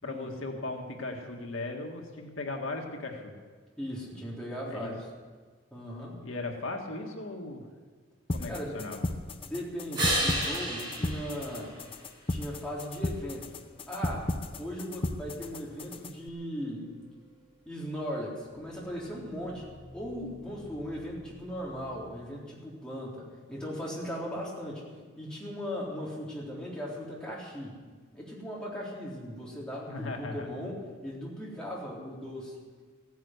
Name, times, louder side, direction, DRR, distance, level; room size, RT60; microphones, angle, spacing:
voice 1, 0.0-3.4 4.6-4.9 6.2-7.6 8.3-9.0 29.9-30.5, left 2 dB, 85° left, 2 dB, 1.8 m, -37 dB
voice 2, 3.8-5.1 5.7-6.2 8.5-8.8 9.4-11.8 12.3-13.5 13.9-14.3 14.6-16.9 17.7-19.7 19.9-24.9 25.2-27.8 28.1-32.6, equal, 5° left, -6 dB, 3.9 m, -38 dB
sound 1, 8.3-16.3, left 1 dB, 25° left, 0.7 m, -35 dB
sound 2, 9.9-12.5 18.3-22.2, right 1 dB, 20° right, 6.2 m, -36 dB
16.0 x 10.5 x 8.0 m, 1.5 s
head